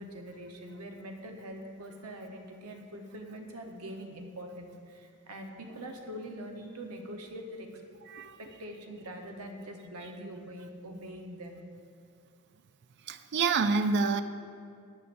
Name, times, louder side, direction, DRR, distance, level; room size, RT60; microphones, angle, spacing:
voice 1, 0.0-7.7 8.4-11.6, equal, 80° right, 3 dB, 1.0 m, -43 dB
voice 2, 8.1-8.4 13.1-14.2, right 4 dB, 50° right, 10 dB, 0.4 m, -27 dB
12.5 x 8.6 x 2.6 m, 2.3 s
head